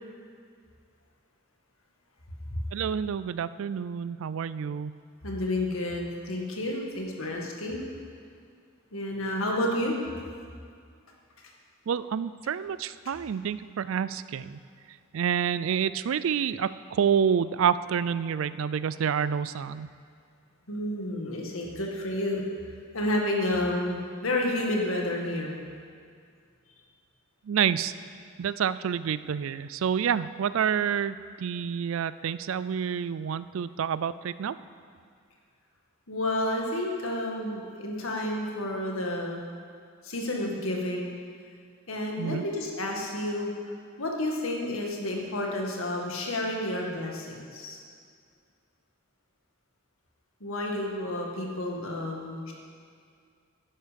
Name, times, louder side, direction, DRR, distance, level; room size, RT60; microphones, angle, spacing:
voice 1, 2.7-4.9 11.9-14.6 15.1-19.9 27.5-27.9 28.4-34.6 42.2-42.4, right 7 dB, 70° right, 16 dB, 0.4 m, -28 dB
voice 2, 5.2-7.9 8.9-10.0 20.7-22.4 22.9-25.6 36.1-39.4 40.0-41.1 41.9-43.5 44.0-47.8 50.4-52.5, left 1 dB, 75° left, 0 dB, 1.9 m, -30 dB
11.0 x 10.0 x 5.2 m, 2.2 s
head